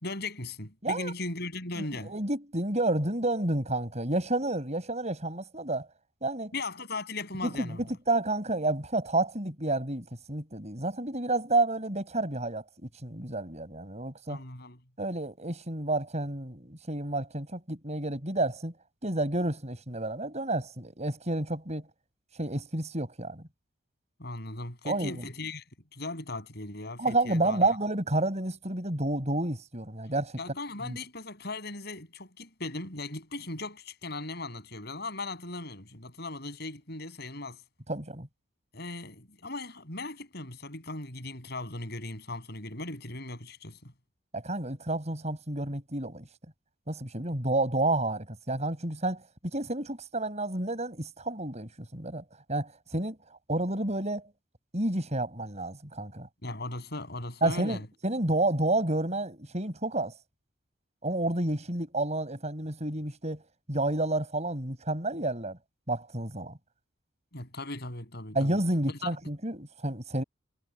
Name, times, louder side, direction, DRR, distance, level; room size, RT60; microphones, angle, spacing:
voice 1, 0.0-2.1 6.5-7.9 14.3-14.8 24.2-25.6 25.9-27.6 30.4-37.6 38.7-43.9 56.4-57.9 67.3-68.6 69.0-69.1, left 2 dB, 55° left, 7.1 m, -38 dB
voice 2, 0.8-1.1 1.9-5.9 6.2-6.5 7.6-12.6 13.0-14.4 15.0-18.7 19.0-21.8 22.4-23.4 24.8-25.2 27.0-30.4 30.9-31.0 37.9-38.3 44.3-46.3 46.9-52.2 52.5-53.2 53.5-54.3 54.7-56.3 57.4-60.1 61.0-63.4 63.7-65.6 65.9-66.5 68.3-70.2, right 2 dB, 35° right, 7.5 m, -30 dB
head